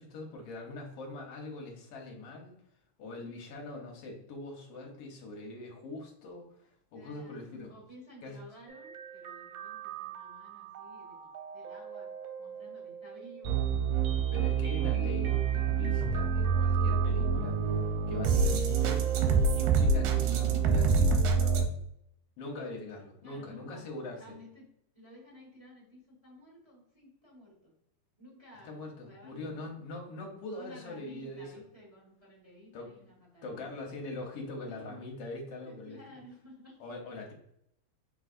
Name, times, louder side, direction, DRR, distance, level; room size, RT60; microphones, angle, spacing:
voice 1, 0.0-2.5 3.0-7.7 8.2-8.4 14.3-17.6 18.1-19.1 19.5-21.7 22.4-24.4 28.6-31.6 32.7-33.2 33.4-36.2 36.8-37.3, left 2 dB, 65° left, 1 dB, 1.7 m, -42 dB
voice 2, 6.9-11.2 11.5-12.1 12.4-13.6 23.2-23.8 24.2-24.7 24.9-27.5 28.2-28.8 29.1-29.7 30.5-33.6 34.6-35.0 35.6-36.7, equal, 25° right, -5 dB, 0.6 m, -54 dB
sound 1, 8.7-21.7, right 5 dB, 85° right, 2.1 m, -28 dB
4.7 x 4.2 x 2.5 m, 0.75 s
omnidirectional pair, 3.5 m